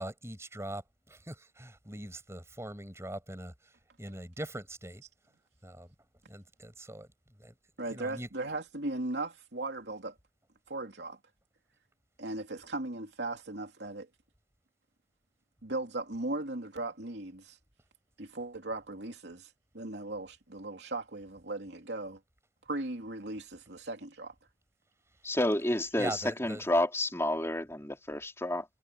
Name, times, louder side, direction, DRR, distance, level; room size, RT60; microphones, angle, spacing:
voice 1, 0.0-5.0 5.6-5.9 6.3-8.3 25.7-26.7, right 1 dB, 15° right, 6.8 m, -42 dB
voice 2, 7.8-10.1 10.7-11.2 12.2-14.1 15.6-17.6 18.2-22.2 22.7-24.3, right 2 dB, 70° right, 2.9 m, -37 dB
voice 3, 25.2-28.7, left 1 dB, 15° left, 3.9 m, -30 dB
head